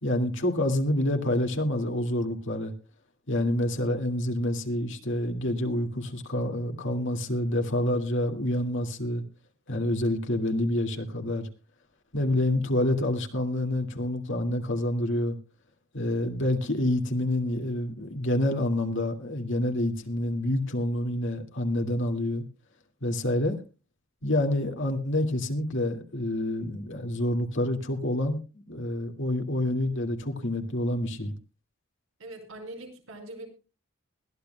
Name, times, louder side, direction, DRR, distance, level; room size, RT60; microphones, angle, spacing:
voice 1, 0.0-2.7 3.3-9.2 9.7-11.5 12.1-15.4 15.9-22.4 23.0-23.6 24.2-31.3, left 1 dB, 60° left, 4 dB, 2.1 m, -27 dB
voice 2, 32.2-33.5, right 1 dB, 65° right, 5 dB, 5.1 m, -42 dB
21.5 x 15.0 x 2.2 m, 0.32 s
head